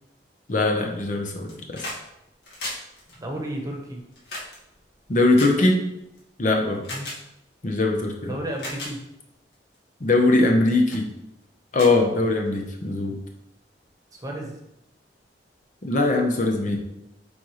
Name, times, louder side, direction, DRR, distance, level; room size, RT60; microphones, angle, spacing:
voice 1, 0.5-1.9 5.1-5.8 6.4-6.8 7.6-8.3 10.0-11.1 11.7-13.1 15.8-16.8, left 2 dB, 45° left, 2 dB, 0.9 m, -21 dB
sound 1, 1.3-2.0 2.3-6.2 6.8-7.2 8.0-8.1 8.5-8.9 9.5-9.8 10.3-10.6 10.9-11.0 11.4-11.5 11.7-12.7 13.8-13.9, left 1 dB, 65° left, 2.2 m, -37 dB
voice 2, 3.2-4.0 6.9-7.1 8.3-9.0 14.1-14.6, right 1 dB, 20° right, 0 dB, 1.1 m, -32 dB
8.8 x 4.0 x 3.2 m, 0.85 s
head